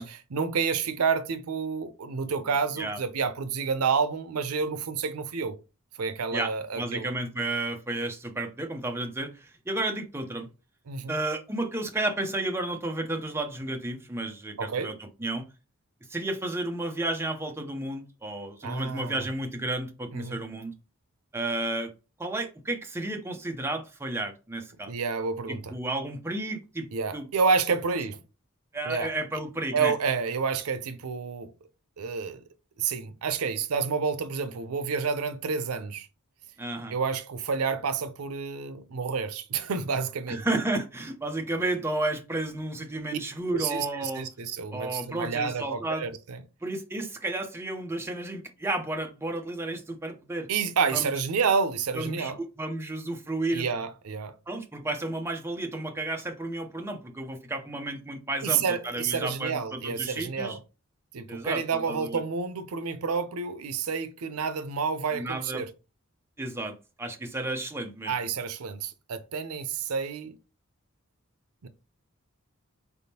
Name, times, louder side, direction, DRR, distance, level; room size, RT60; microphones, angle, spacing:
voice 1, 0.0-5.6 6.0-7.1 10.9-11.2 14.6-14.9 18.6-19.2 20.1-20.4 24.9-25.7 26.9-28.2 28.8-29.2 29.7-31.5 32.0-32.4 32.8-36.1 36.9-40.4 43.1-43.2 43.5-46.4 50.5-52.4 53.5-54.4 58.4-60.6 61.1-65.7 68.1-70.4 71.6-71.7, right 5 dB, 90° right, 0.5 m, -29 dB
voice 2, 6.3-10.5 11.1-14.9 15.2-15.4 16.1-20.7 21.3-21.9 22.2-24.9 25.5-26.9 27.1-27.3 28.7-29.9 36.6-37.0 40.3-44.3 44.7-46.0 46.6-50.5 50.9-51.1 51.9-53.7 54.5-60.6 61.3-62.2 65.1-65.7 66.4-68.3, right 2 dB, 10° right, 0.6 m, -32 dB
4.0 x 3.5 x 2.8 m
head